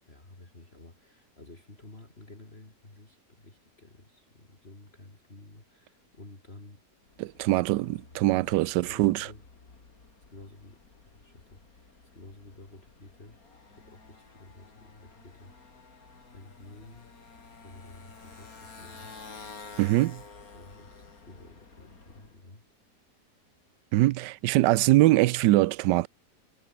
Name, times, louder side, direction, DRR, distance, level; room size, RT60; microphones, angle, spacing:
voice 1, 0.0-7.2 8.5-9.5 10.3-13.4 13.8-15.5 16.3-17.1 17.6-19.2 20.5-22.6, left 2 dB, 35° left, 4.4 m, -51 dB
Motorcycle, 7.0-22.4, left 4 dB, 55° left, 3.3 m, -51 dB
voice 2, 7.2-9.3 19.8-20.2 23.9-26.1, right 17 dB, 80° right, 1.2 m, -23 dB
omnidirectional pair, 1.9 m